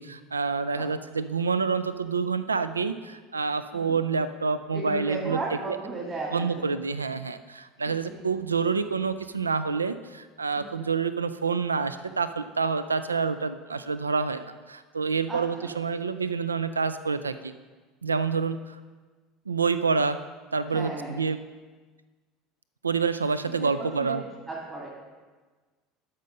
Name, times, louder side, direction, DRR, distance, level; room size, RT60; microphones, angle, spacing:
voice 1, 0.0-5.4 5.7-5.8 6.3-17.5 18.0-18.8 19.5-20.2 20.5-21.4 22.8-24.2, right 5 dB, 85° right, 13 dB, 0.3 m, -27 dB
voice 2, 4.7-6.8 7.9-8.0 10.6-10.8 15.3-15.7 20.7-21.2 23.6-23.7 24.0-24.2 24.5-24.9, right 3 dB, 30° right, -4 dB, 2.1 m, -35 dB
12.5 x 5.4 x 5.2 m, 1.4 s
figure-of-eight pair, 70°, 0 cm